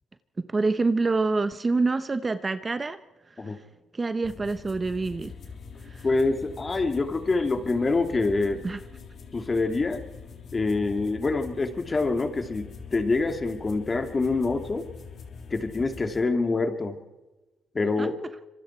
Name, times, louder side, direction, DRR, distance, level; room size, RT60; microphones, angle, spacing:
voice 1, 0.4-3.0 3.5-3.6 3.9-5.3 5.8-6.1 8.6-8.8 18.0-18.1, right 3 dB, 30° right, 0.9 m, -26 dB
sound 1, 4.2-16.2, left 5 dB, 60° left, 3.3 m, -44 dB
voice 2, 6.0-8.7 9.3-10.0 10.5-14.9 15.5-17.0 17.7-18.2, left 3 dB, 30° left, 2.5 m, -26 dB
26.0 x 23.5 x 4.5 m
cardioid pair, 90°, 0 cm